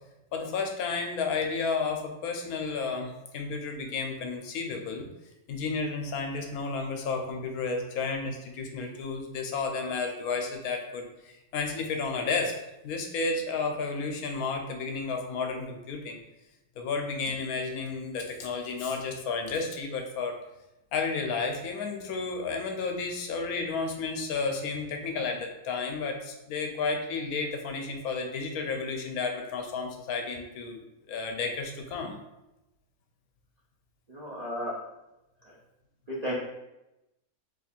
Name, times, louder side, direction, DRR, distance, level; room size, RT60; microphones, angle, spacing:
voice 1, 0.3-5.1 5.5-12.5 12.8-16.2 16.8-20.4 20.9-30.8 31.1-32.2, left 4 dB, 80° left, 4 dB, 1.1 m, -32 dB
voice 2, 34.1-34.7 35.4-35.5 36.1-36.4, equal, 55° right, -7 dB, 0.4 m, -33 dB
2.9 x 2.4 x 4.2 m, 0.93 s
omnidirectional pair, 1.6 m